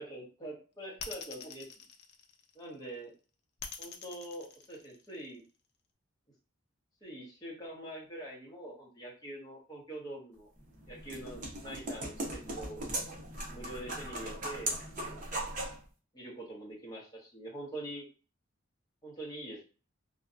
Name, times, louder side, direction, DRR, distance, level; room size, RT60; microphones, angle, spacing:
voice 1, 0.0-1.7 2.5-3.1 3.8-5.4 7.0-10.5 10.9-12.8 13.5-14.7 15.0-15.2 16.1-18.1 19.0-19.6, right 1 dB, 20° left, -4 dB, 0.8 m, -44 dB
sound 1, 1.0-2.7 3.6-5.4, left 6 dB, 50° left, 0.4 m, -44 dB
sound 2, 10.6-15.8, right 1 dB, 35° right, 0.6 m, -38 dB
2.6 x 2.2 x 2.4 m, 0.36 s
head